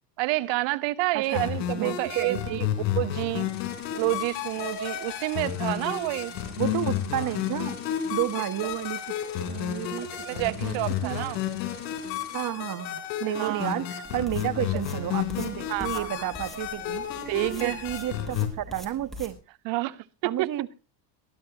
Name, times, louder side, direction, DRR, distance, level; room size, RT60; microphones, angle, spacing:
voice 1, 0.2-2.7 3.0-3.5 3.9-6.3 10.3-11.4 13.3-13.7 15.7-16.3 17.3-17.8 19.6-20.5, right 19 dB, 65° right, 1.1 m, -29 dB
voice 2, 1.1-1.5 1.8-2.6 6.6-7.8 8.1-9.0 9.4-11.2 12.3-17.1 17.5-19.4 20.2-20.8, right 13 dB, 40° right, 1.2 m, -31 dB
sound 1, 1.3-18.5, left 10 dB, 75° left, 3.7 m, -32 dB
sound 2, 3.5-12.4, left 7 dB, 40° left, 7.0 m, -48 dB
sound 3, 14.0-19.3, left 1 dB, ahead, 5.2 m, -44 dB
22.0 x 12.5 x 3.0 m
supercardioid pair, 90°, 49 cm